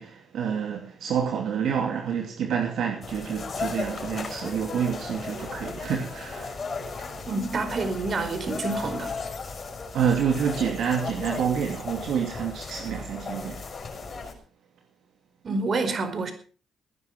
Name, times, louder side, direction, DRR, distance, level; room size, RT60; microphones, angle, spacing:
voice 1, 0.0-7.1 9.9-13.6, right 7 dB, 70° right, 2.6 m, -28 dB
sound 1, 3.0-14.3, left 4 dB, 40° left, 6.8 m, -36 dB
voice 2, 7.3-9.2 15.4-16.3, right 3 dB, 45° right, 4.7 m, -28 dB
19.5 x 10.5 x 5.2 m
cardioid pair, 90°, 0 cm